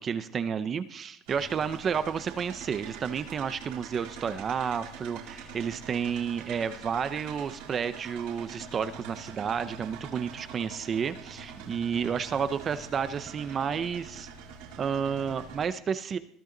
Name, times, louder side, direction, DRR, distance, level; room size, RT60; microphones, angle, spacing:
voice 1, 0.0-14.3 14.8-16.2, right 7 dB, 25° right, 12 dB, 0.7 m, -31 dB
sound 1, 1.3-15.7, right 5 dB, 85° right, 4.5 m, -44 dB
22.5 x 15.0 x 4.0 m, 0.65 s
cardioid pair, 175°, 0 cm